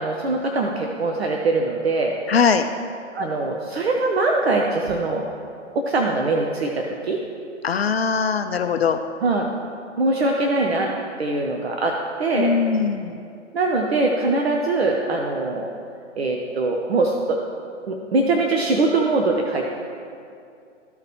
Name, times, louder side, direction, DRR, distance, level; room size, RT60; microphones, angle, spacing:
voice 1, 0.0-2.2 3.1-5.3 5.7-7.2 9.2-9.5 10.0-10.9 11.2-12.6 13.5-15.7 16.2-17.4 17.9-19.6, right 2 dB, 55° right, 1 dB, 0.8 m, -22 dB
voice 2, 2.3-2.7 7.6-9.0 12.4-13.2, left 6 dB, 55° left, 7 dB, 0.5 m, -21 dB
14.0 x 4.7 x 3.1 m, 2.5 s
figure-of-eight pair, 130°, 37 cm